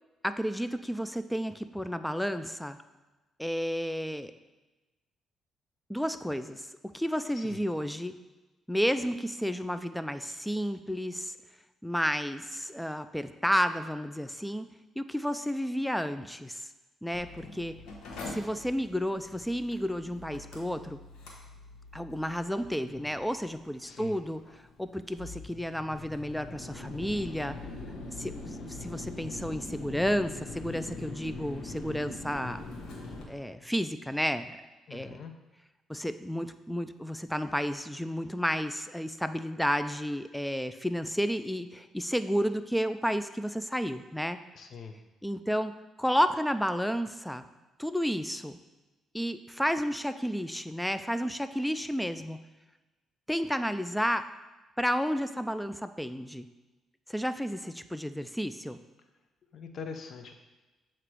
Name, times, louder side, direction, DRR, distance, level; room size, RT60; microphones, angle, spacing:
voice 1, 0.2-2.8 3.4-4.3 5.9-6.7 6.9-8.2 8.7-11.3 11.8-14.7 15.0-16.7 17.0-17.7 18.3-21.0 21.9-24.4 24.8-27.6 28.2-32.6 33.3-34.6 34.9-35.2 35.9-44.4 45.2-47.5 47.8-48.6 49.1-52.4 53.3-54.3 54.8-56.5 57.1-58.8, equal, 5° left, 11 dB, 0.3 m, -31 dB
Mechanical fan, 17.1-33.2, left 2 dB, 90° left, 1.1 m, -43 dB
voice 2, 23.9-24.2 34.9-35.3 44.5-45.0 59.5-60.3, left 5 dB, 55° left, 6 dB, 0.7 m, -43 dB
7.5 x 2.9 x 4.7 m, 1.1 s
cardioid pair, 90°, 0 cm